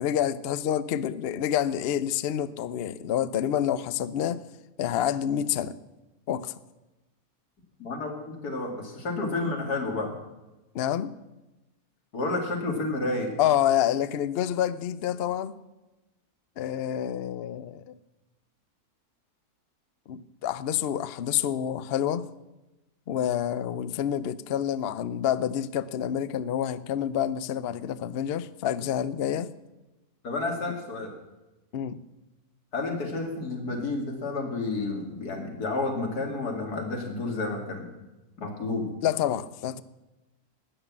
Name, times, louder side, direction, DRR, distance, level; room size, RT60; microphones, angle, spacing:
voice 1, 0.0-4.5 4.8-5.8 6.3-6.5 10.7-11.1 13.4-15.6 16.6-17.9 20.1-22.3 23.1-29.5 31.7-32.0 39.0-39.8, left 10 dB, 65° left, 0.6 m, -28 dB
voice 2, 7.8-10.1 12.1-13.3 30.2-31.1 32.7-37.9 38.4-38.9, left 3 dB, 85° left, 2.8 m, -30 dB
12.5 x 9.5 x 7.3 m
omnidirectional pair, 1.6 m